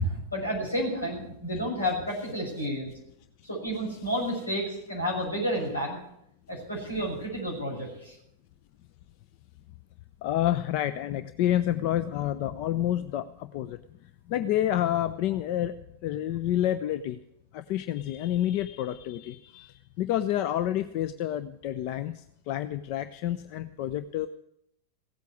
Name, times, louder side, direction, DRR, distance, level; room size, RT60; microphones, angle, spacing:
voice 1, 0.0-2.9 3.4-6.0 6.5-8.1, equal, 80° left, -1 dB, 6.5 m, -31 dB
voice 2, 10.2-17.2 17.5-24.3, left 12 dB, 45° left, 13 dB, 0.6 m, -29 dB
16.5 x 8.3 x 9.6 m, 0.78 s
figure-of-eight pair, 90°, 0 cm